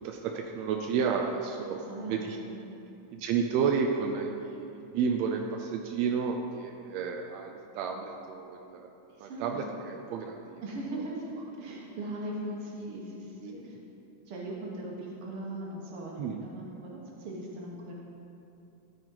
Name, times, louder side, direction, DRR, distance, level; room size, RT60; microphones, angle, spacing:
voice 1, 0.0-2.4 3.1-8.9 9.2-10.6 16.2-16.4, right 6 dB, 85° right, 2 dB, 1.5 m, -31 dB
voice 2, 1.6-2.2 2.5-2.7 9.1-9.6 10.6-13.8 14.3-17.9, right 1 dB, 50° right, -3 dB, 2.1 m, -39 dB
14.0 x 5.9 x 3.9 m, 2.8 s
omnidirectional pair, 3.6 m